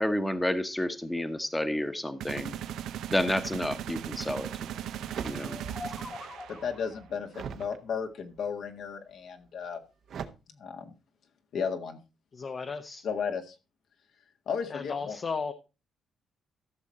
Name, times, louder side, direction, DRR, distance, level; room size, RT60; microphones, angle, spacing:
voice 1, 0.0-2.5 3.1-4.5 5.2-5.6, left 1 dB, 10° left, 9 dB, 1.2 m, -30 dB
sound 1, 2.2-6.9, right 10 dB, 80° right, 0.7 m, -38 dB
sound 2, 5.1-6.0 6.4-7.8 8.4-8.8 10.1-10.3, right 7 dB, 65° right, 1.2 m, -41 dB
sound 3, 5.3-7.1, left 3 dB, 25° left, 1.7 m, -44 dB
voice 2, 6.5-9.8 10.5-10.9 11.5-12.0 13.0-13.6 14.5-15.2, left 6 dB, 70° left, 5 dB, 1.8 m, -34 dB
voice 3, 12.3-13.1 14.7-15.5, left 5 dB, 45° left, 6 dB, 1.0 m, -35 dB
14.0 x 6.3 x 4.3 m, 0.30 s
cardioid pair, 90°, 0 cm